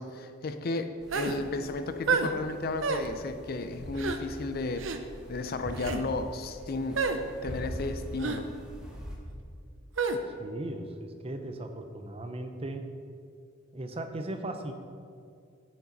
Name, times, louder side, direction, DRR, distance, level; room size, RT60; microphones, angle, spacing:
voice 1, 0.0-7.0 7.4-8.5, left 3 dB, 50° left, 9 dB, 0.5 m, -34 dB
sound 1, 1.0-9.2, equal, 5° right, 1.3 m, -43 dB
sound 2, 1.1-1.4 2.1-2.3 2.8-3.1 4.0-4.2 4.8-5.0 5.7-6.0 7.0-7.2 8.2-8.4 10.0-10.2, right 4 dB, 75° right, 0.7 m, -29 dB
voice 2, 10.4-12.8 13.7-14.7, right 1 dB, 30° right, 7 dB, 0.6 m, -37 dB
10.5 x 8.5 x 4.0 m, 2.3 s
head